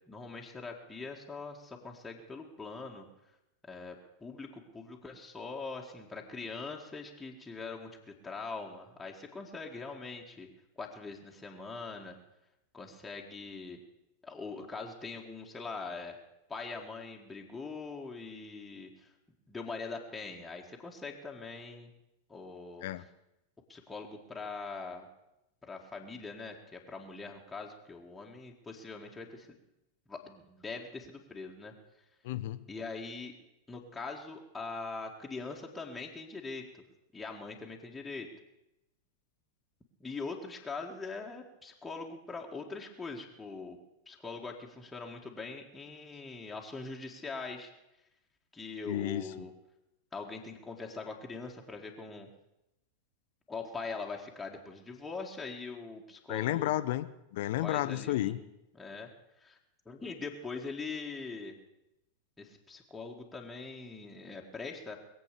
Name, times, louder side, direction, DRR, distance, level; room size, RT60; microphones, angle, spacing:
voice 1, 0.1-3.1 3.6-10.5 10.8-12.2 12.7-13.8 14.2-16.2 16.5-19.1 19.5-21.9 22.3-22.9 23.7-25.1 25.6-29.5 30.1-31.7 32.7-33.3 33.7-36.8 37.1-38.3 40.0-43.8 44.1-47.7 48.5-49.5 50.1-52.3 53.5-56.7 57.6-58.3 58.7-59.1 59.4-59.6 59.9-61.6 62.4-65.0, left 4 dB, 10° left, -1 dB, 1.8 m, -42 dB
voice 2, 32.2-32.6 48.9-49.2 56.3-58.4, left 14 dB, 50° left, 13 dB, 0.7 m, -32 dB
21.5 x 7.8 x 6.9 m, 0.88 s
figure-of-eight pair, 90°, 0 cm